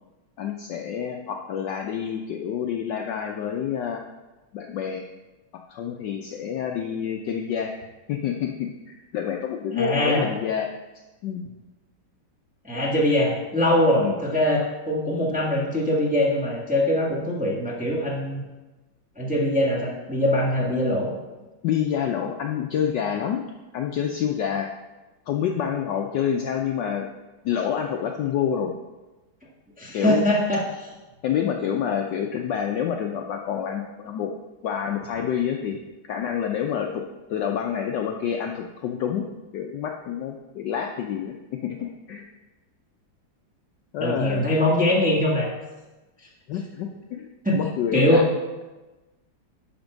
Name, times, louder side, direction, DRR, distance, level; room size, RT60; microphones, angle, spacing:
voice 1, 0.4-4.0 4.5-5.1 5.7-7.7 8.1-10.7 11.2-11.4 14.0-14.2 21.6-23.4 23.7-24.7 25.3-27.1 27.4-28.7 29.9-30.2 31.2-34.3 34.6-35.8 36.0-37.0 37.3-39.2 39.5-41.4 41.6-41.8 42.1-42.2 43.9-44.5 46.5-48.2, left 8 dB, 70° left, 3 dB, 1.1 m, -27 dB
voice 2, 9.7-10.3 12.6-18.4 19.2-21.1 29.8-30.9 44.0-45.5 47.4-47.6 47.9-48.3, left 1 dB, 5° right, -4 dB, 1.2 m, -22 dB
10.5 x 4.4 x 6.0 m, 1.1 s
omnidirectional pair, 2.3 m